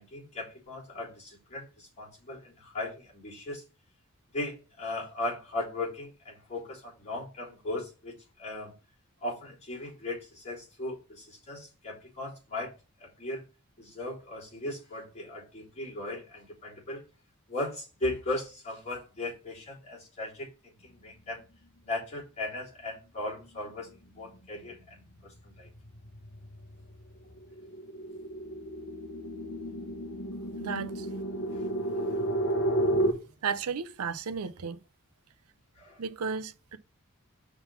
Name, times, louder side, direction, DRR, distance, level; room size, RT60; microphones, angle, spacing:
voice 1, 0.0-3.6 4.3-8.8 9.2-12.7 13.0-13.4 13.8-17.0 17.5-21.4 21.8-25.7 31.5-31.7 35.7-36.0, left 2 dB, 30° left, 3.8 m, -37 dB
sound 1, 23.4-23.8 24.2-33.1, right 1 dB, 55° left, 1.2 m, -33 dB
voice 2, 30.6-31.1 33.4-34.8 36.0-36.8, right 6 dB, 85° right, 0.6 m, -34 dB
5.7 x 3.9 x 5.6 m
head